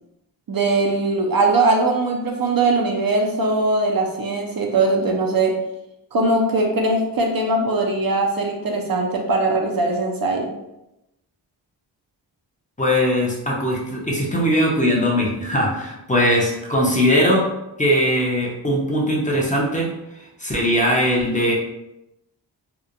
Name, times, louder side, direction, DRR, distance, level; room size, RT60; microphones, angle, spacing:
voice 1, 0.5-5.5 6.1-10.5, right 2 dB, 50° right, 1 dB, 0.5 m, -20 dB
voice 2, 12.8-17.5 17.8-19.9 20.4-21.5, equal, 15° left, -3 dB, 0.6 m, -20 dB
2.9 x 2.1 x 2.4 m, 0.90 s
wide cardioid pair, 65°, 45 cm